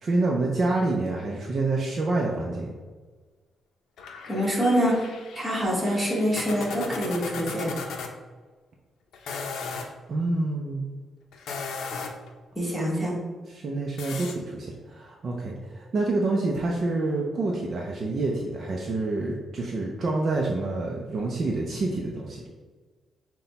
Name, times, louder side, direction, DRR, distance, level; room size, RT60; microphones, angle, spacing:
voice 1, 0.0-2.7 10.1-10.9 13.5-22.4, right 2 dB, 40° right, -1 dB, 0.5 m, -27 dB
sound 1, 4.0-8.1 9.1-9.9 11.3-12.3 14.0-14.3, left 4 dB, 85° left, 0.5 m, -36 dB
voice 2, 4.3-5.1 5.3-7.7 12.5-13.1, equal, 10° right, -5 dB, 1.2 m, -25 dB
5.8 x 2.2 x 4.0 m, 1.4 s
wide cardioid pair, 160°, 0 cm